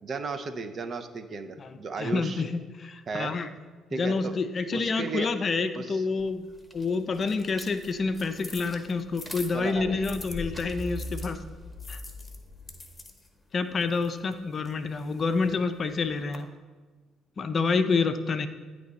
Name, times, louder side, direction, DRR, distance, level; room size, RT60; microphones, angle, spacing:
voice 1, 0.0-2.4 3.1-3.3 3.9-4.4 4.7-5.3 5.7-6.0 9.5-10.1, right 4 dB, 50° right, 7 dB, 0.5 m, -34 dB
voice 2, 2.0-3.5 3.9-11.4 11.9-12.0 13.5-16.5 17.4-18.5, left 4 dB, 45° left, 9 dB, 0.4 m, -28 dB
sound 1, 6.2-10.4 11.0-16.4, left 3 dB, 25° left, 1.0 m, -48 dB
sound 2, 6.5-13.0, left 1 dB, 5° right, 1.0 m, -42 dB
9.4 x 3.3 x 4.0 m, 1.4 s
hypercardioid pair, 50°, 0 cm